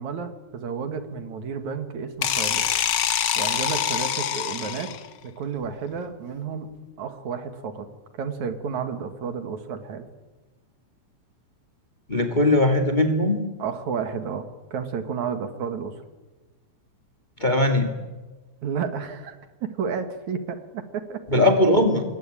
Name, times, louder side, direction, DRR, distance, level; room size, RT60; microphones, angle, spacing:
voice 1, 0.0-2.6 3.4-4.9 5.2-6.7 7.0-7.9 8.1-10.0 13.6-14.4 14.7-16.0 18.6-21.4, right 6 dB, 70° right, 9 dB, 3.2 m, -31 dB
sound 1, 2.2-5.1, left 9 dB, 90° left, 0.9 m, -25 dB
voice 2, 12.1-13.5 17.4-17.9 21.3-22.0, left 1 dB, 15° left, 5 dB, 2.0 m, -19 dB
27.0 x 23.0 x 9.0 m, 1.2 s
omnidirectional pair, 3.5 m